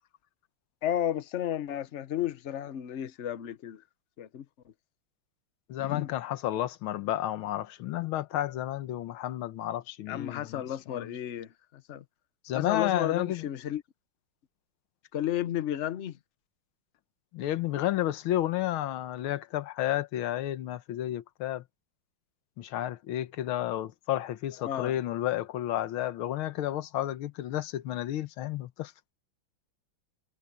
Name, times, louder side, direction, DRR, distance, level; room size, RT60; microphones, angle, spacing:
voice 1, 0.8-3.8 4.2-4.4 5.8-6.1 10.1-12.0 12.5-13.8 15.1-16.2 24.6-24.9, left 11 dB, 60° left, 0.7 m, -32 dB
voice 2, 5.7-11.1 12.5-13.5 17.3-21.6 22.6-29.1, left 13 dB, 80° left, 1.7 m, -31 dB
omnidirectional pair, 2.3 m